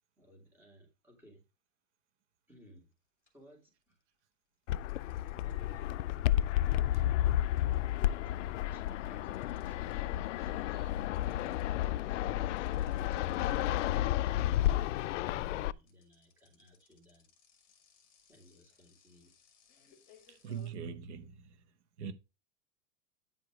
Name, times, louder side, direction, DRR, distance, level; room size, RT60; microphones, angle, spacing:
voice 1, 0.2-1.4 2.5-2.9 3.3-4.0 5.4-5.9 6.9-7.3 7.6-10.0 15.5-17.3 18.3-19.4, left 1 dB, 5° right, 2.6 m, -58 dB
sound 1, 2.7-2.9 3.3-4.2 4.9-10.3 10.6-20.7, left 7 dB, 20° left, 1.9 m, -66 dB
Fixed-wing aircraft airplane, 4.7-15.7, left 13 dB, 70° left, 0.5 m, -31 dB
sound 2, 9.0-14.8, right 2 dB, 25° right, 1.4 m, -61 dB
voice 2, 10.5-10.9 20.3-21.6 22.0-22.1, right 7 dB, 60° right, 1.2 m, -43 dB
9.7 x 5.0 x 4.7 m
supercardioid pair, 180°, 39 cm